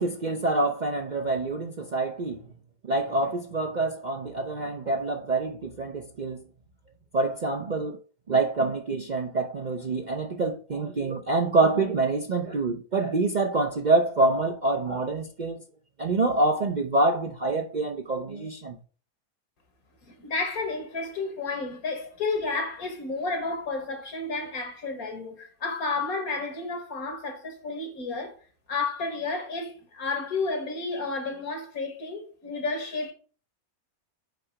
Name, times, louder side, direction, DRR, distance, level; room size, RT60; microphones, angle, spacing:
voice 1, 0.0-2.4 2.9-6.4 7.1-8.0 8.3-15.6 16.0-18.8, right 2 dB, 50° right, 0.5 m, -26 dB
voice 2, 20.1-28.4 28.7-33.1, left 3 dB, 80° left, 2.0 m, -31 dB
5.8 x 4.9 x 4.6 m
omnidirectional pair, 1.5 m